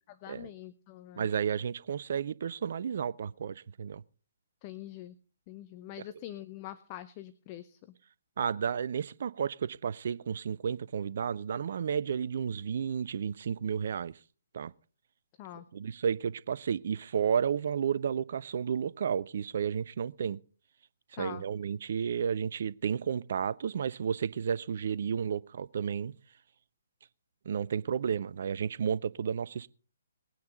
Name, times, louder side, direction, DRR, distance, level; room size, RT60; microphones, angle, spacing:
voice 1, 0.1-1.3 4.6-5.2 5.5-7.9 15.4-15.7 21.1-21.4, left 13 dB, 30° left, 0.7 m, -44 dB
voice 2, 1.2-4.0 8.4-14.2 14.5-14.7 15.5-20.4 21.1-26.1 27.5-29.7, right 7 dB, 50° right, 0.5 m, -32 dB
20.0 x 9.5 x 3.9 m
figure-of-eight pair, 130°, 0 cm